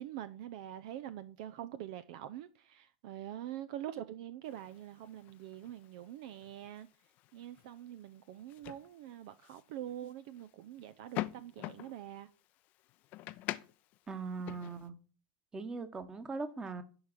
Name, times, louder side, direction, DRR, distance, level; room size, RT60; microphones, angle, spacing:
voice 1, 0.0-6.9 7.3-12.3, right 12 dB, 55° right, 0.6 m, -45 dB
sound 1, 4.4-14.9, left 17 dB, 40° left, 0.6 m, -47 dB
voice 2, 14.1-14.9 15.5-16.8, right 4 dB, 15° right, 1.4 m, -40 dB
11.0 x 4.8 x 7.3 m
figure-of-eight pair, 85°, 4 cm